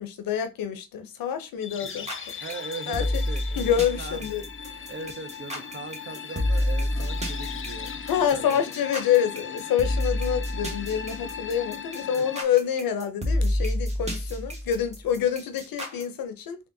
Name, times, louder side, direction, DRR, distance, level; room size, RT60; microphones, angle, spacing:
voice 1, 0.0-2.1 2.9-3.2 3.6-4.4 4.7-4.8 8.1-16.6, left 9 dB, 80° left, 0.6 m, -27 dB
sound 1, 1.6-12.4, left 7 dB, 40° left, 0.4 m, -38 dB
sound 2, 1.9-16.0, left 1 dB, 20° right, 1.3 m, -29 dB
voice 2, 2.4-3.6 4.0-4.3 4.9-8.1 8.3-8.6 12.1-12.2, right 4 dB, 35° right, 0.6 m, -39 dB
3.5 x 2.4 x 2.6 m
supercardioid pair, 45°, 34 cm